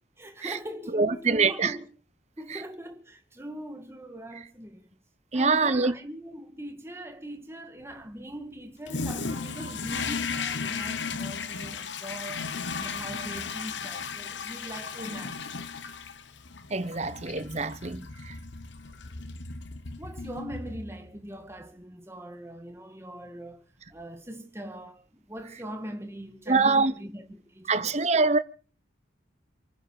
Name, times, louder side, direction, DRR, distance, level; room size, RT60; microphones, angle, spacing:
voice 1, 0.2-1.9 2.4-4.9 5.3-12.5 12.8-15.5 20.0-23.6 23.9-28.1, right 1 dB, 15° right, 2.2 m, -41 dB
voice 2, 0.9-1.7 2.5-2.6 5.3-5.9 16.7-18.3 26.5-26.9 27.7-28.4, right 4 dB, 35° right, 1.0 m, -24 dB
Toilet flush, 8.9-21.2, left 5 dB, 70° left, 1.1 m, -35 dB
28.5 x 10.0 x 4.9 m
head